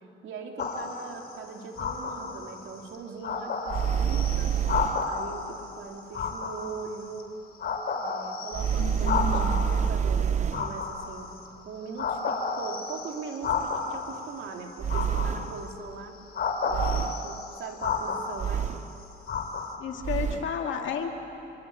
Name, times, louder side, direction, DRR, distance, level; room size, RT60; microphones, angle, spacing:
voice 1, 0.2-4.6 5.0-7.4 7.9-11.3 11.6-16.2 16.6-18.7, right 5 dB, 75° right, 2 dB, 3.0 m, -40 dB
sound 1, 0.6-1.2 1.8-2.5 2.9-3.0 3.2-5.4 6.1-7.2 7.6-9.8 10.4-11.4 12.0-14.2 14.9-15.7 16.3-18.7 19.3-19.8, left 5 dB, 50° left, 3.1 m, -31 dB
sound 2, 3.7-5.2 8.5-10.8 14.8-15.7 16.7-17.4 18.4-19.0 20.0-20.6, right 7 dB, 35° right, 0.5 m, -27 dB
voice 2, 8.8-9.6 19.8-21.1, left 7 dB, 75° left, 3 dB, 2.3 m, -32 dB
25.5 x 23.5 x 8.4 m, 3.0 s
cardioid pair, 90°, 20 cm